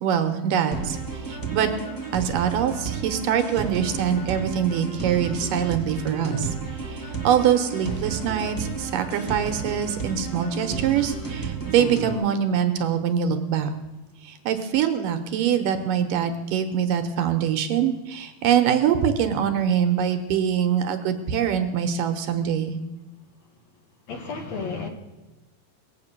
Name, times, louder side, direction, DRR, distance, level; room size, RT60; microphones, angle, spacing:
voice 1, 0.0-1.7 2.1-13.7 14.2-22.7, right 8 dB, 70° right, 7 dB, 2.5 m, -24 dB
sound 1, 0.7-12.1, right 5 dB, 15° left, 0.7 m, -32 dB
voice 2, 24.1-24.9, left 4 dB, 60° left, 4 dB, 2.2 m, -32 dB
20.5 x 8.3 x 6.7 m, 1.1 s
omnidirectional pair, 4.3 m